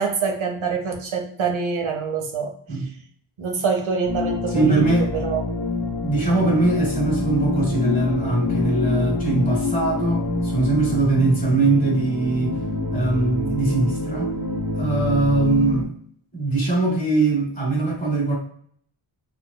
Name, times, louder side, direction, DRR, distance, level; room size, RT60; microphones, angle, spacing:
voice 1, 0.0-2.8 3.4-4.8 5.1-5.4, right 5 dB, 75° right, 3 dB, 0.8 m, -25 dB
sound 1, 4.0-15.8, left 3 dB, 50° left, 0.9 m, -26 dB
voice 2, 4.5-5.1 6.0-12.6 12.9-14.3 14.7-15.9 16.3-18.3, right 3 dB, 15° left, -4 dB, 1.5 m, -21 dB
4.6 x 2.5 x 2.2 m, 0.62 s
wide cardioid pair, 120°, 48 cm